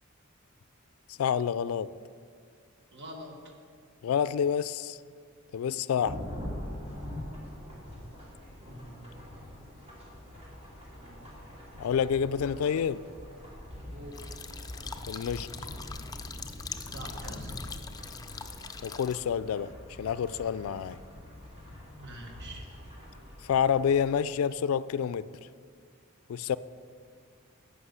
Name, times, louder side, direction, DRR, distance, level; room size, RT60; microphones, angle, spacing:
voice 1, 1.1-1.9 4.0-5.0 5.5-6.2 11.8-13.0 15.1-15.5 18.8-19.7 20.0-21.0 23.4-25.3 26.3-26.6, left 8 dB, 85° left, 16 dB, 0.3 m, -28 dB
voice 2, 2.9-3.4 13.9-14.3 16.9-17.5 22.0-22.6, right 1 dB, 55° right, 2 dB, 1.3 m, -44 dB
Thunderstorm / Rain, 6.0-24.1, left 1 dB, 30° right, 2.6 m, -44 dB
sound 1, 14.1-19.2, left 5 dB, 20° left, 0.5 m, -43 dB
11.5 x 5.6 x 8.0 m, 2.1 s
head